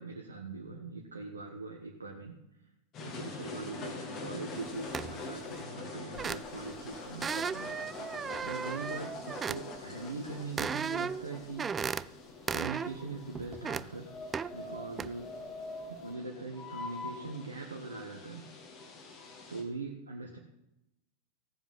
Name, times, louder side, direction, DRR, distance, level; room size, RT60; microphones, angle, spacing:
voice 1, 0.0-2.4 3.0-7.7 8.4-11.7 12.5-14.0 14.5-15.3 16.0-18.4 19.5-20.4, right 3 dB, 75° right, 0 dB, 1.3 m, -41 dB
sound 1, 2.9-19.6, left 3 dB, 35° left, 2.5 m, -44 dB
sound 2, 4.9-5.2 6.1-6.7 7.2-9.6 10.6-11.3 11.6-12.1 12.5-13.0 13.4-13.9 14.3-14.5 15.0-15.1, right 6 dB, 20° right, 0.3 m, -35 dB
16.0 x 7.3 x 5.5 m, 0.88 s
figure-of-eight pair, 90°, 0 cm